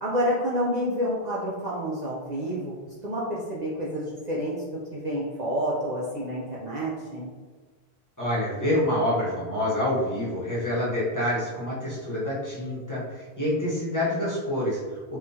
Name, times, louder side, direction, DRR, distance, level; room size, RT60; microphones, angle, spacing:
voice 1, 0.0-2.7 3.0-4.6 4.9-7.3, equal, 50° right, -5 dB, 0.6 m, -29 dB
voice 2, 8.2-14.8, left 1 dB, 20° left, -8 dB, 0.9 m, -27 dB
3.7 x 2.4 x 2.7 m, 1.4 s
omnidirectional pair, 1.1 m